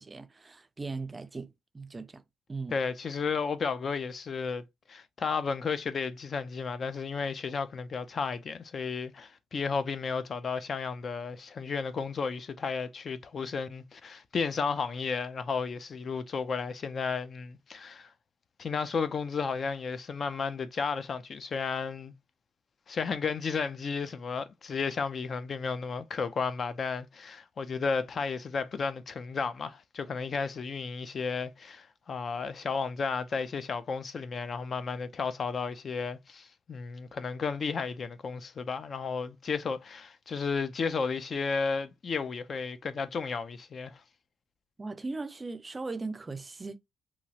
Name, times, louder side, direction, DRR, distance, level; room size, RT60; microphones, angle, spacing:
voice 1, 0.0-2.2 2.5-2.8 44.8-46.8, right 3 dB, 25° right, 0.4 m, -38 dB
voice 2, 2.7-18.1 18.6-22.1 22.9-44.0, left 5 dB, 45° left, 0.4 m, -33 dB
3.0 x 2.4 x 2.7 m
cardioid pair, 90°, 0 cm